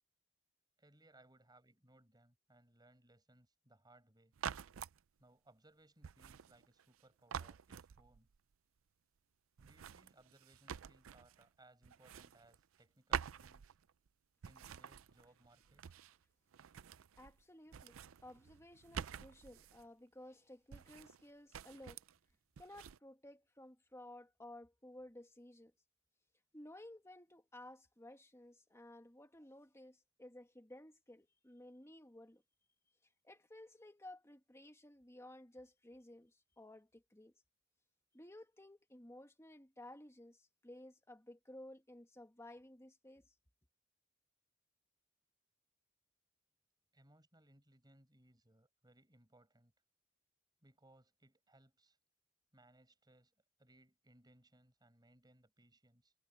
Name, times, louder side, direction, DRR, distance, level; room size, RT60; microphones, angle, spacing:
voice 1, 0.8-4.3 5.2-8.3 9.6-13.8 14.4-15.9 46.9-49.7 50.6-52.0 52.5-56.1, right 1 dB, 20° right, 5.6 m, -67 dB
sound 1, 4.3-5.0 6.0-7.0 7.3-8.4 9.6-11.5 11.8-12.8 13.1-14.1 14.4-16.2 16.5-17.4 17.7-19.8 20.7-21.2 21.5-22.2 22.6-23.0, right 8 dB, 75° right, 0.5 m, -47 dB
voice 2, 17.2-22.0 22.6-25.7 26.5-32.4 33.0-37.3 38.1-43.3, left 1 dB, 15° left, 1.7 m, -56 dB
head